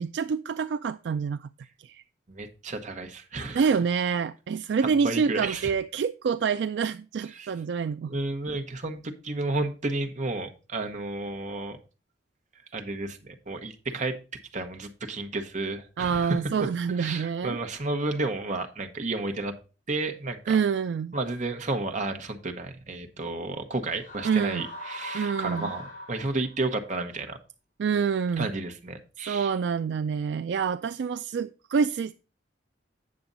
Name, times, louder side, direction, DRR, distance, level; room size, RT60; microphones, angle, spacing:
voice 1, 0.0-1.5 1.8-2.0 3.5-8.1 16.0-17.6 20.5-21.1 24.2-24.7 25.1-25.7 27.8-28.5 29.3-32.1, right 6 dB, 70° right, 0.3 m, -27 dB
voice 2, 2.3-3.7 4.8-5.7 7.3-7.5 8.0-11.8 12.7-14.2 14.5-16.4 17.0-19.5 19.9-20.6 21.1-27.4 28.4-29.5, right 2 dB, 45° right, 1.1 m, -32 dB
sound 1, 24.0-26.6, left 1 dB, 45° left, 4.9 m, -39 dB
8.7 x 6.8 x 3.9 m
head